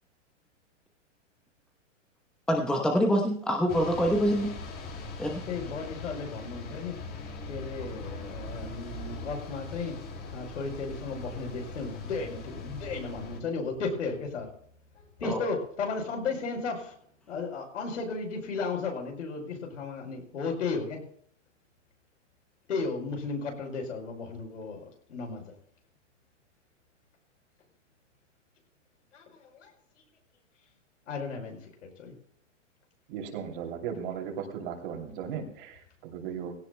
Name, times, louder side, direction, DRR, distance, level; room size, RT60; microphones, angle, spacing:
voice 1, 2.5-4.5 5.2-5.4 15.2-15.4, equal, ahead, 2 dB, 0.9 m, -25 dB
sound 1, 3.7-13.4, left 3 dB, 25° left, 2.6 m, -40 dB
voice 2, 5.5-7.0 7.5-10.0 10.3-14.5 15.0-16.9 17.3-21.0 22.7-24.8 25.1-25.4 29.1-29.7 31.1-32.1, left 4 dB, 75° left, 3 dB, 5.8 m, -34 dB
voice 3, 33.1-36.5, right 7 dB, 45° right, 2 dB, 2.9 m, -37 dB
18.0 x 17.0 x 2.2 m, 0.63 s
hypercardioid pair, 145°, 37 cm